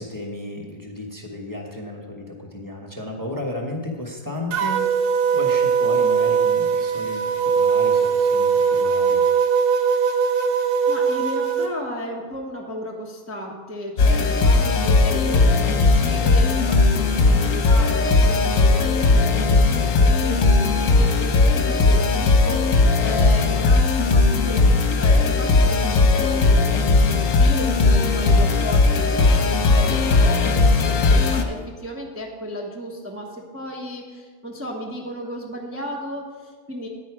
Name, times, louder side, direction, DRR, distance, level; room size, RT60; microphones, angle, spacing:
voice 1, 0.0-4.8 5.3-9.2, left 1 dB, 15° left, 0 dB, 1.1 m, -33 dB
sound 1, 4.5-11.7, right 6 dB, 90° right, 1.4 m, -20 dB
voice 2, 10.9-36.9, equal, 10° right, -2 dB, 0.9 m, -34 dB
sound 2, 14.0-31.4, left 3 dB, 60° left, 1.3 m, -17 dB
10.0 x 9.3 x 4.9 m, 1.5 s
omnidirectional pair, 1.6 m